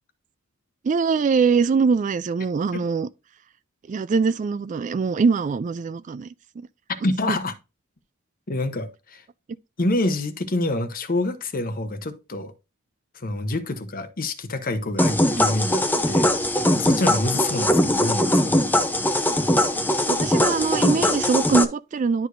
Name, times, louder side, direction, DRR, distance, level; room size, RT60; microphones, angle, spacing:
voice 1, 0.8-3.1 3.9-6.3 7.3-7.4 15.4-15.5 20.1-22.3, right 5 dB, 35° right, 0.3 m, -22 dB
voice 2, 7.0-7.5 8.5-9.2 9.8-12.5 13.1-16.3 16.7-18.7, left 2 dB, 45° left, 0.9 m, -27 dB
sound 1, 15.0-21.6, left 1 dB, 10° left, 0.6 m, -21 dB
11.0 x 4.7 x 2.6 m
head